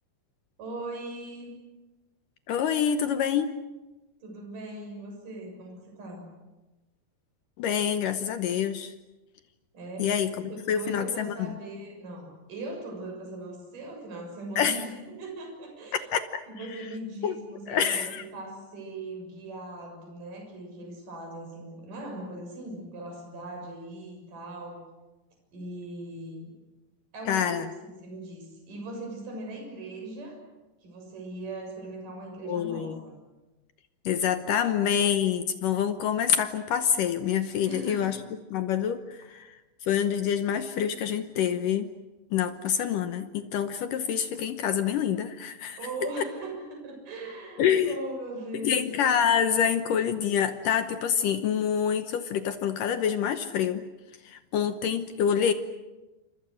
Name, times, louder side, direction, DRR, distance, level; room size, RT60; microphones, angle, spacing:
voice 1, 0.6-1.5 4.2-6.2 9.7-24.8 25.5-26.5 27.1-30.4 30.8-33.2 34.5-34.8 37.7-38.2 45.8-48.8, right 2 dB, 45° right, 1 dB, 8.3 m, -39 dB
voice 2, 2.5-3.6 7.6-8.9 10.0-11.6 14.6-14.8 16.1-16.2 16.7-16.8 17.2-17.4 17.7-18.2 27.3-27.7 32.5-33.0 34.1-38.2 38.5-39.6 39.8-41.9 42.3-45.8 46.2-46.3 47.6-48.0 48.6-53.9 54.2-55.5, left 8 dB, 75° left, 9 dB, 1.9 m, -26 dB
29.5 x 27.0 x 6.5 m, 1.1 s
omnidirectional pair, 5.2 m